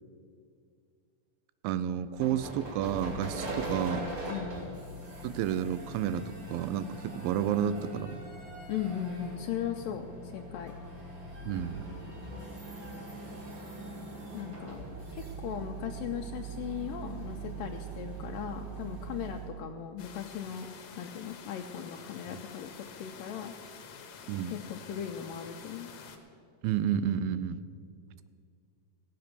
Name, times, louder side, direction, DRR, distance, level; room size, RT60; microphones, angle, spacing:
voice 1, 1.6-4.1 5.2-8.2 11.4-11.8 24.3-24.6 26.6-27.6, right 9 dB, 85° right, 15 dB, 2.4 m, -31 dB
sound 1, 2.1-19.5, right 2 dB, 35° right, 2.6 m, -41 dB
voice 2, 8.7-10.7 14.3-14.8 15.1-20.7 21.0-23.5 24.5-25.9, left 9 dB, 80° left, 3 dB, 2.1 m, -38 dB
sound 2, 20.0-26.2, left 6 dB, 65° left, 1.9 m, -49 dB
16.5 x 7.8 x 6.8 m, 2.2 s
omnidirectional pair, 4.2 m